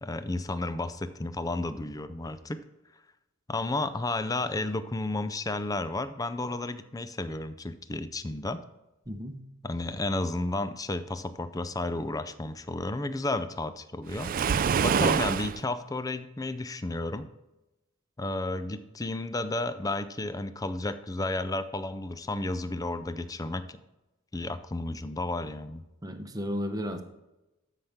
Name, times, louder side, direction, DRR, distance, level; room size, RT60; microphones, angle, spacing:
voice 1, 0.0-2.6 3.5-8.6 9.6-14.3 14.8-17.3 18.2-23.7 24.3-25.8, left 2 dB, 15° left, 11 dB, 0.5 m, -32 dB
voice 2, 9.1-9.4 26.0-27.0, equal, 20° right, 5 dB, 0.9 m, -33 dB
Waves surf, 14.1-15.6, right 6 dB, 40° right, 0.3 m, -25 dB
13.0 x 5.8 x 3.6 m, 0.97 s
head